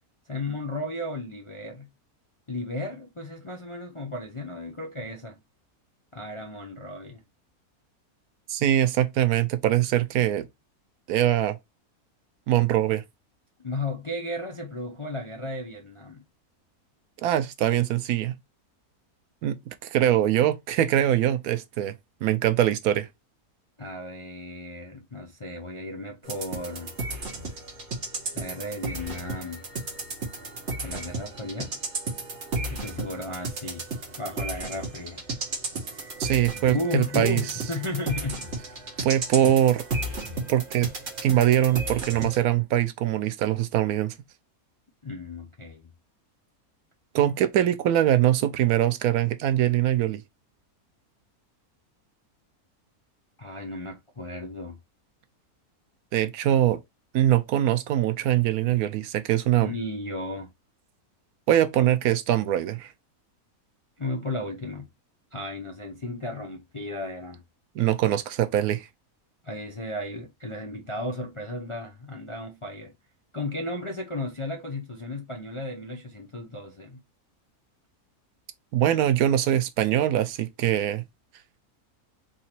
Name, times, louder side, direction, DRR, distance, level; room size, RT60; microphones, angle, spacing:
voice 1, 0.3-1.9 2.5-5.4 6.1-7.2 13.6-16.2 23.8-26.9 28.3-29.6 30.8-31.8 32.7-33.8 34.2-35.2 35.9-36.1 36.7-38.5 45.0-45.9 53.4-54.8 59.6-60.5 61.8-61.9 64.0-64.9 65.3-67.4 69.4-72.9 73.3-77.0, left 2 dB, 40° left, 0.4 m, -34 dB
voice 2, 8.5-10.5 11.1-11.6 12.5-13.0 17.2-18.3 19.4-19.6 19.9-21.9 22.2-23.1 36.2-37.4 39.0-39.8 40.5-40.9 41.2-44.1 47.1-50.2 56.1-56.8 57.1-59.7 61.5-62.9 67.8-68.9 78.7-81.0, right 12 dB, 85° right, 1.1 m, -23 dB
sound 1, 26.2-42.4, right 2 dB, 50° right, 1.4 m, -34 dB
3.8 x 2.9 x 4.3 m
omnidirectional pair, 1.6 m